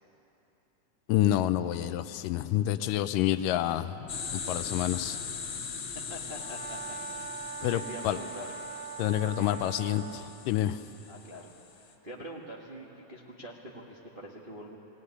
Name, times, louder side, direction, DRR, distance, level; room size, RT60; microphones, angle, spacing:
voice 1, 1.1-4.0 4.3-5.2 7.6-8.2 9.0-10.8, left 13 dB, 80° left, 12 dB, 2.2 m, -28 dB
sound 1, 4.1-11.8, left 6 dB, 55° left, 1.3 m, -40 dB
voice 2, 6.1-7.3 7.6-8.5 9.2-9.6 11.1-14.8, equal, 30° right, -3 dB, 0.9 m, -45 dB
Brass instrument, 6.3-10.2, right 7 dB, 65° right, 3.5 m, -42 dB
18.0 x 17.5 x 9.7 m, 2.9 s
omnidirectional pair, 3.8 m